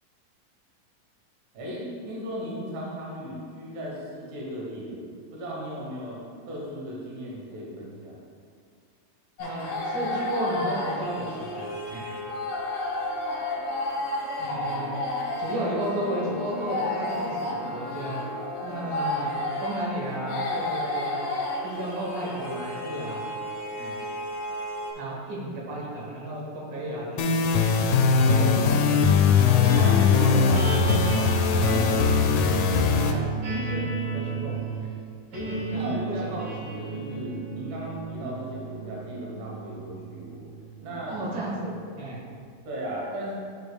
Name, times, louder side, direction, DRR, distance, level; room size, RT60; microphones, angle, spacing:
voice 1, 1.5-5.0 5.3-6.2 6.5-8.2 35.3-40.5 40.8-41.2 42.7-43.3, equal, 70° right, -4 dB, 2.7 m, -36 dB
sound 1, 9.4-24.9, left 1 dB, 55° left, 1.5 m, -31 dB
voice 2, 9.4-12.1 14.4-15.0 15.4-18.2 18.6-19.3 19.6-21.2 21.6-23.2 23.8-24.0 24.9-27.3 28.2-29.0 29.4-32.7 33.0-33.3 33.5-33.9 34.1-34.6 34.8-34.9 35.7-36.3 41.1-42.2, right 1 dB, 90° right, -4 dB, 3.0 m, -33 dB
sound 2, 27.2-33.1, left 5 dB, 85° left, 2.2 m, -20 dB
sound 3, 29.6-41.9, right 4 dB, 45° right, 2.1 m, -32 dB
11.0 x 5.2 x 2.3 m, 2.2 s
omnidirectional pair, 3.8 m